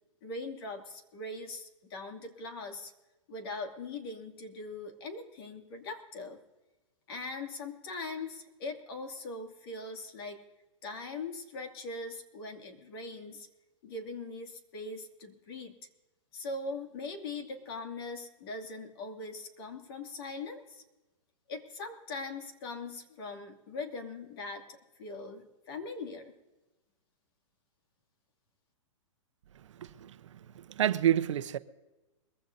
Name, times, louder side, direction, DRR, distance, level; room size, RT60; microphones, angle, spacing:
voice 1, 0.2-2.9 3.3-6.4 7.1-10.4 10.8-13.5 13.8-15.7 16.3-20.8 21.5-24.6 25.0-26.3, left 3 dB, 45° left, 2.6 m, -41 dB
voice 2, 29.8-30.2 30.5-31.6, right 11 dB, 65° right, 0.8 m, -28 dB
22.5 x 15.5 x 2.7 m
hypercardioid pair, 160°, 17 cm